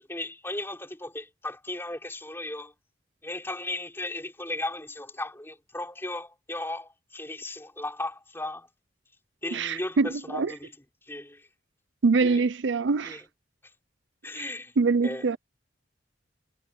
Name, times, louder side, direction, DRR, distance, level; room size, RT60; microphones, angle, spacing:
voice 1, 0.0-2.7 3.2-8.7 9.4-10.7 11.0-11.5 12.2-12.4 13.0-13.2 14.2-14.7 15.0-15.3, left 2 dB, 15° left, 4.0 m, -36 dB
voice 2, 9.5-10.5 12.0-13.2 14.8-15.4, right 4 dB, 75° right, 0.5 m, -24 dB
head